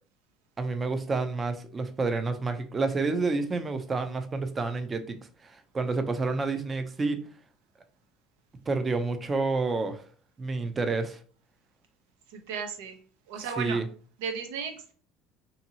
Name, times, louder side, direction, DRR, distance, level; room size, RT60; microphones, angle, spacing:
voice 1, 0.6-7.2 8.7-10.1 10.4-11.2 13.6-13.9, right 3 dB, 25° right, 0.4 m, -29 dB
voice 2, 12.3-13.0 13.3-13.8 14.2-14.9, right 6 dB, 85° right, 0.6 m, -35 dB
2.7 x 2.6 x 2.7 m
supercardioid pair, 95°, 0 cm